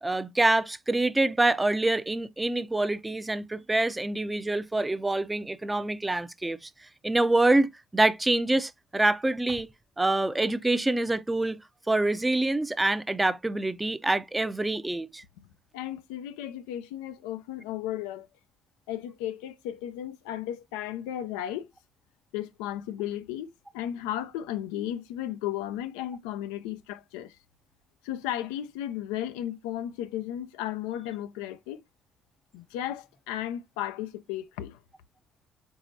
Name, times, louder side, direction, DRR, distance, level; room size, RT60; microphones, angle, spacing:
voice 1, 0.0-6.7 7.0-9.7 10.0-11.6 11.9-15.2, right 2 dB, 15° right, 0.5 m, -26 dB
voice 2, 15.7-18.3 18.9-21.7 22.3-27.4 28.0-31.8 32.5-34.8, left 12 dB, 85° left, 0.4 m, -34 dB
4.6 x 4.0 x 2.6 m
hypercardioid pair, 55°, 0 cm